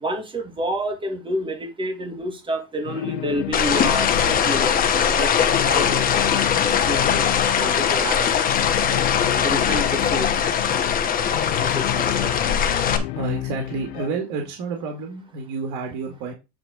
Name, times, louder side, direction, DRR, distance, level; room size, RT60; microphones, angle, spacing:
voice 1, 0.0-6.1 6.3-6.5 6.9-7.2 7.6-8.3 9.4-10.3 11.6-12.3, right 1 dB, 15° right, 1.8 m, -29 dB
sound 1, 2.8-14.1, left 16 dB, 80° left, 0.9 m, -31 dB
sound 2, 3.5-13.0, left 8 dB, 30° left, 1.1 m, -21 dB
voice 2, 13.1-16.3, right 4 dB, 65° right, 2.0 m, -29 dB
8.6 x 3.8 x 4.8 m
cardioid pair, 140°, 31 cm